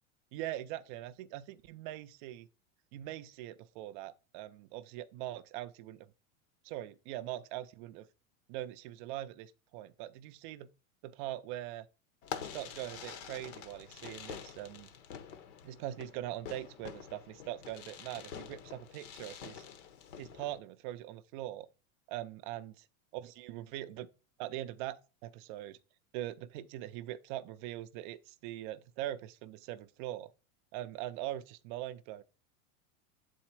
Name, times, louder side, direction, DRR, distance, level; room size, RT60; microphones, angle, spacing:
voice 1, 0.3-2.5 2.9-6.1 6.6-8.1 8.5-10.7 11.0-11.9 12.4-14.9 15.6-19.7 20.2-21.7 22.1-22.7 23.1-24.1 24.4-25.8 26.1-30.3 30.7-32.2, right 14 dB, 40° right, 0.4 m, -42 dB
Fireworks, 12.2-20.6, left 8 dB, 65° left, 1.1 m, -47 dB
7.2 x 4.2 x 4.5 m
supercardioid pair, 145°, 40 cm